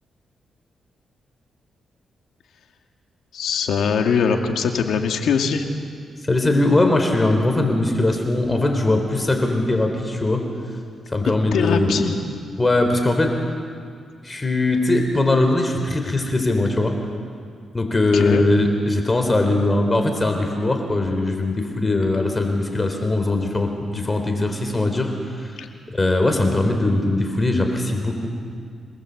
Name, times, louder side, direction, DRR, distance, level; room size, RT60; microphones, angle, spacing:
voice 1, 3.3-5.7 11.2-12.2 18.1-18.4 25.6-25.7, left 6 dB, 85° left, 4 dB, 2.2 m, -22 dB
voice 2, 6.2-10.4 11.1-11.9 12.6-13.3 14.2-16.9 17.7-25.5 25.9-28.3, left 2 dB, 25° left, 5 dB, 3.3 m, -20 dB
27.5 x 19.5 x 8.0 m, 2.2 s
cardioid pair, 80°, 0 cm